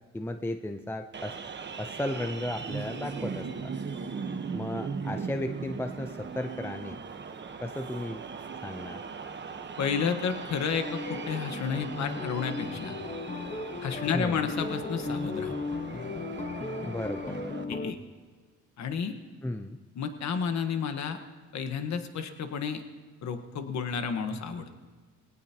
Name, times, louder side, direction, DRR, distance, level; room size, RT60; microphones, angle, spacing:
voice 1, 0.1-1.4 1.8-3.7 4.5-7.0 7.6-8.2 8.6-9.0 14.1-14.5 16.8-17.4 19.4-19.8, left 1 dB, 10° left, 7 dB, 0.6 m, -35 dB
sound 1, 1.1-17.6, right 5 dB, 35° right, 1.2 m, -39 dB
voice 2, 9.8-12.9 13.8-15.6 17.7-18.0 18.8-19.1 20.0-21.2 21.5-22.8 23.2-24.7, left 6 dB, 65° left, 7 dB, 1.4 m, -31 dB
sound 2, 10.7-17.9, left 3 dB, 25° left, 1.3 m, -36 dB
20.0 x 17.5 x 2.9 m, 1.5 s
cardioid pair, 90°, 30 cm